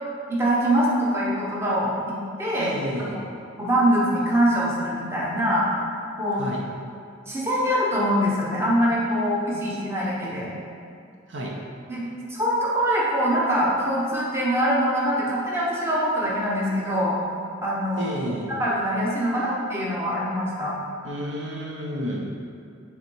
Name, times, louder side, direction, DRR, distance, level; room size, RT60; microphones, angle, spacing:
voice 1, 0.3-2.8 3.6-5.7 6.2-6.4 7.3-10.5 11.9-12.0 12.3-17.1 17.6-18.1 18.6-20.7, equal, 15° right, -6 dB, 1.0 m, -23 dB
voice 2, 2.6-3.2 6.4-6.6 9.5-9.6 11.3-11.5 18.0-18.5 21.0-22.3, equal, 70° right, -2 dB, 0.9 m, -31 dB
7.1 x 3.5 x 4.6 m, 2.4 s
head